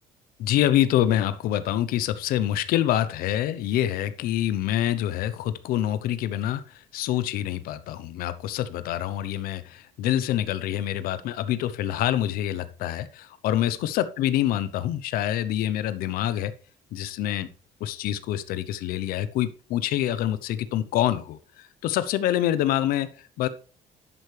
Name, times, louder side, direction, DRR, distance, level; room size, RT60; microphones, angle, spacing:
voice 1, 0.4-16.5 16.9-17.5 17.8-23.5, left 12 dB, 85° left, 14 dB, 0.8 m, -26 dB
11.5 x 8.2 x 3.3 m, 0.38 s
cardioid pair, 160°, 15 cm